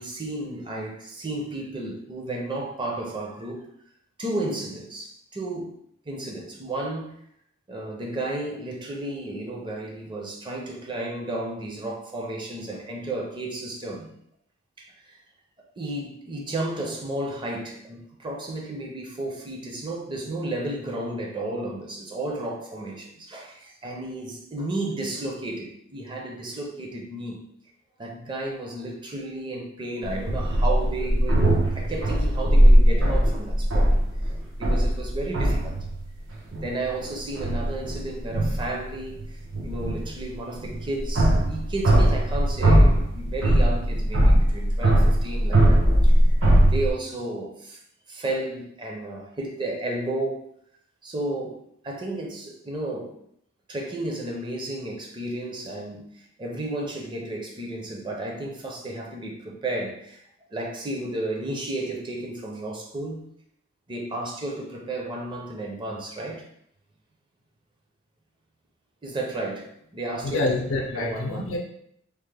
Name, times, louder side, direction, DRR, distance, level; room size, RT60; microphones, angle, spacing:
voice 1, 0.0-3.6 4.2-5.8 6.1-7.2 7.7-14.1 14.8-15.2 15.8-27.4 28.0-31.5 31.7-34.0 34.6-35.8 36.6-46.2 46.6-47.8 48.1-50.5 51.0-53.2 53.7-60.2 60.5-63.3 63.9-66.5 69.0-70.6 70.9-71.5, right 2 dB, 25° right, 0 dB, 0.5 m, -33 dB
sound 1, 30.0-36.0 36.3-37.0 37.4-38.8 39.2-46.9, right 1 dB, 80° right, 0.7 m, -20 dB
voice 2, 70.2-71.6, left 2 dB, 85° left, 1 dB, 0.5 m, -27 dB
3.3 x 2.1 x 3.3 m, 0.70 s
head